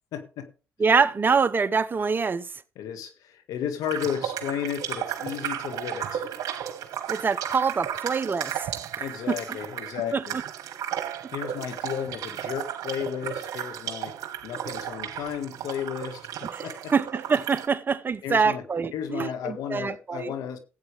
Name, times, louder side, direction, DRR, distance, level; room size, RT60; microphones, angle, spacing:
voice 1, 0.1-0.5 2.8-6.3 9.0-10.4 11.3-14.1 14.4-16.2 16.6-16.9 18.2-18.6 18.9-20.6, left 9 dB, 80° left, 1.7 m, -33 dB
voice 2, 0.8-2.5 7.1-8.7 9.3-9.6 10.1-10.4 16.5-20.3, right 5 dB, 35° right, 0.8 m, -25 dB
sound 1, 3.8-17.7, right 10 dB, 70° right, 1.4 m, -34 dB
16.0 x 8.3 x 3.4 m
supercardioid pair, 75°, 6 cm